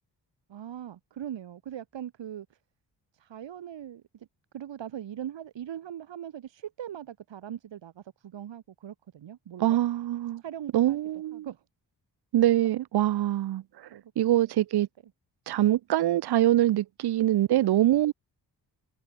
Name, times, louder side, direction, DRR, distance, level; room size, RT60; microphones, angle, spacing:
voice 1, 0.5-2.6 3.1-4.3 4.5-9.8 10.4-11.0 11.3-11.6 12.5-12.6 13.9-14.1, right 10 dB, 85° right, 7.8 m, -40 dB
voice 2, 9.6-10.4 10.7-11.4 12.3-13.6 14.2-14.9 15.5-18.1, right 13 dB, 65° right, 0.6 m, -24 dB
cardioid pair, 70°, 43 cm